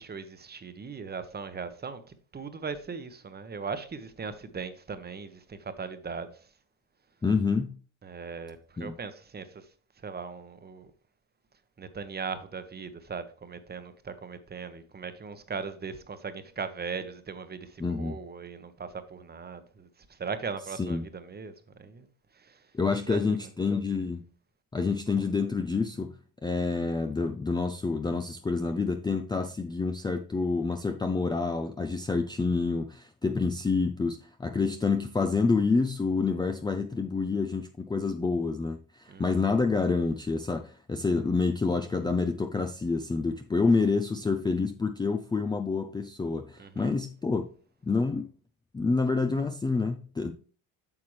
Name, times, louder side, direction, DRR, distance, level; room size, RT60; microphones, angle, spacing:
voice 1, 0.0-6.3 8.0-9.7 10.0-10.9 11.8-22.1 22.3-22.6 23.1-23.4 39.1-39.2 46.6-46.9, right 5 dB, 25° right, 1.0 m, -39 dB
voice 2, 7.2-7.7 8.8-8.9 17.8-18.2 20.8-21.0 22.7-24.2 24.7-26.1 26.4-47.4 47.8-48.3 48.7-50.3, left 4 dB, 10° left, 0.4 m, -28 dB
8.7 x 5.8 x 3.2 m
supercardioid pair, 100°, 40 cm